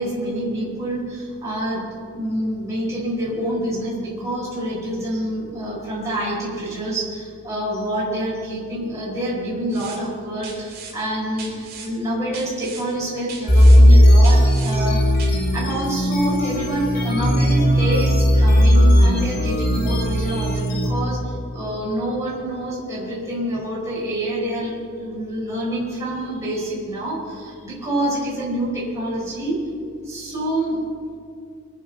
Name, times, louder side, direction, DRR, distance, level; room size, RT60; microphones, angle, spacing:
voice 1, 0.0-15.1 15.5-29.6 30.0-30.8, right 1 dB, 15° right, -7 dB, 4.8 m, -27 dB
sound 1, 9.7-10.0 10.4-10.9 11.4-11.9 12.3-12.8 13.3-13.8 14.2-14.7 15.2-15.3, right 5 dB, 45° right, 3.5 m, -38 dB
sound 2, 13.5-20.9, equal, 45° left, 2.7 m, -16 dB
24.0 x 9.5 x 5.4 m, 2.4 s
head